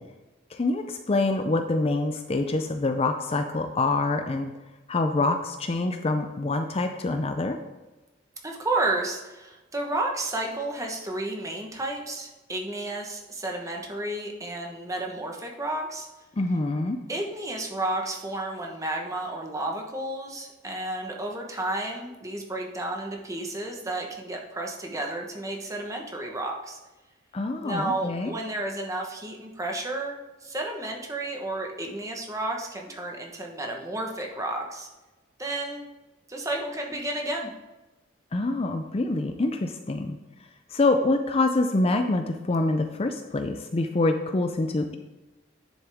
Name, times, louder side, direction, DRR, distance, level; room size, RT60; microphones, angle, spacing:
voice 1, 0.5-4.5 4.9-7.6 16.4-17.0 27.3-28.3 38.3-40.2 40.7-45.0, left 2 dB, 30° left, 6 dB, 0.5 m, -26 dB
voice 2, 8.4-16.1 17.1-26.8 27.6-30.2 30.4-34.9 35.4-35.8 36.3-37.5, right 2 dB, 15° right, 1 dB, 1.1 m, -32 dB
9.8 x 7.2 x 3.5 m, 1.1 s
head